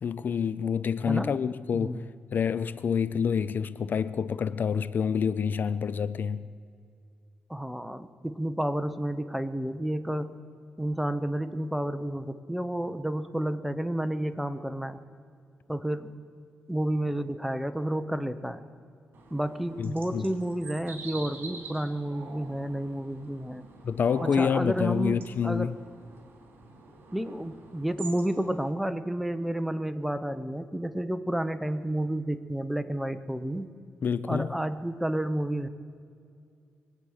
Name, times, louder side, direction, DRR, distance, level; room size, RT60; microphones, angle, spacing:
voice 1, 0.0-6.5 19.8-20.3 23.8-25.8 34.0-34.5, left 7 dB, 50° left, 0.4 m, -28 dB
voice 2, 1.7-2.0 7.5-10.4 10.8-15.0 15.7-16.1 16.7-18.6 19.3-23.6 24.2-25.2 25.4-25.7 27.1-33.7 34.3-35.7, right 1 dB, ahead, 0.7 m, -30 dB
sound 1, 19.1-28.7, right 3 dB, 60° right, 3.2 m, -46 dB
22.5 x 8.8 x 6.4 m
cardioid pair, 110°, 4 cm